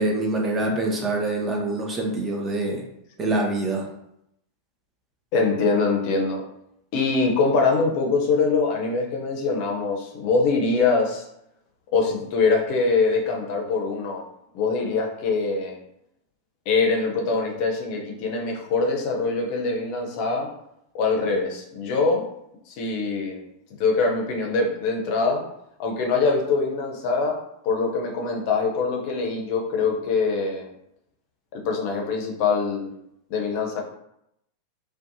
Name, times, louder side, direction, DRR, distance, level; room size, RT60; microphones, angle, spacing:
voice 1, 0.0-2.8 3.2-3.9, right 2 dB, 20° right, 0 dB, 0.5 m, -25 dB
voice 2, 5.3-6.4 6.9-11.2 11.9-14.2 14.5-15.8 16.7-20.5 20.9-22.2 22.7-23.4 23.8-25.4 25.8-27.4 27.6-30.7 31.5-32.9 33.3-33.8, left 4 dB, 45° left, 1 dB, 0.5 m, -23 dB
2.5 x 2.2 x 2.7 m, 0.78 s
figure-of-eight pair, 90°, 0 cm